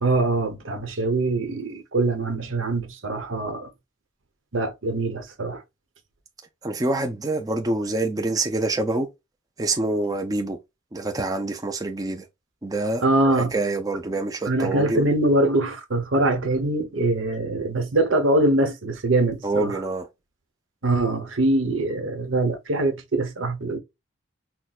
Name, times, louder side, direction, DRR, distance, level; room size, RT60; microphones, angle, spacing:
voice 1, 0.0-3.7 4.5-5.6 13.0-13.5 14.5-19.7 20.8-23.8, right 2 dB, 80° right, 1.0 m, -23 dB
voice 2, 6.6-9.1 9.6-10.6 10.9-12.3 12.6-13.0 13.3-15.1 19.4-20.1, right 2 dB, 20° right, 0.5 m, -26 dB
6.0 x 2.2 x 2.3 m
head